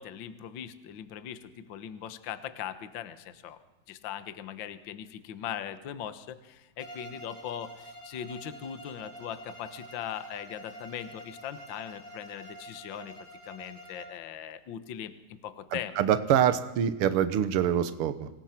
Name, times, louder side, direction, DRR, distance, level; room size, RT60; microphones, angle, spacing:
voice 1, 0.0-3.6 3.9-13.1 13.4-15.9, left 9 dB, 75° left, 11 dB, 1.0 m, -40 dB
Bowed string instrument, 6.8-14.3, right 1 dB, 10° left, 4.9 m, -47 dB
voice 2, 15.7-18.3, right 9 dB, 80° right, 11 dB, 1.2 m, -25 dB
27.0 x 19.0 x 5.9 m, 1.1 s
omnidirectional pair, 3.9 m